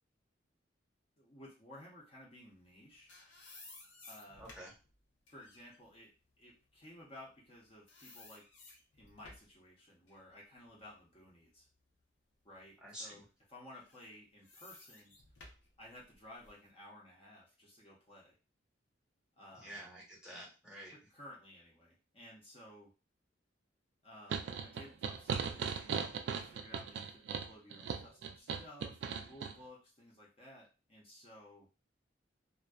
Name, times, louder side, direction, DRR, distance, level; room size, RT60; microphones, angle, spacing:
voice 1, 1.2-3.2 4.0-4.4 5.3-6.1 6.4-8.4 9.0-11.7 12.4-15.1 15.8-18.4 19.4-19.9 20.9-22.9 24.0-31.7, left 1 dB, 30° left, -4 dB, 0.6 m, -56 dB
sound 1, 2.7-7.6 7.9-9.6 10.1-12.0 12.5-12.6 13.7-16.7, left 2 dB, 80° left, 0.7 m, -58 dB
voice 2, 4.4-4.7 12.8-13.2 19.5-20.9, equal, 5° right, -5 dB, 0.9 m, -49 dB
sound 2, 24.3-29.5, right 6 dB, 65° right, 0.3 m, -38 dB
2.5 x 2.2 x 2.2 m, 0.31 s
head